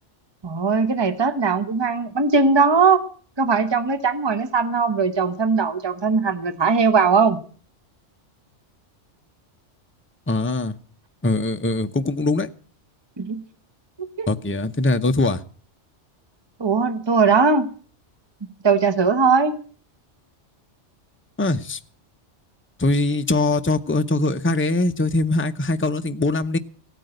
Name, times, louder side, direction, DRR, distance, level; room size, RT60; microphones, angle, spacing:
voice 1, 0.4-3.0 3.4-7.4 13.2-13.4 14.0-14.3 16.6-17.7 18.6-19.5, right 4 dB, 25° right, 10 dB, 1.1 m, -19 dB
voice 2, 10.3-10.8 11.2-12.5 14.3-15.4 21.4-21.8 22.8-26.6, left 2 dB, 15° left, 8 dB, 0.5 m, -22 dB
16.0 x 9.2 x 7.8 m, 0.42 s
omnidirectional pair, 1.2 m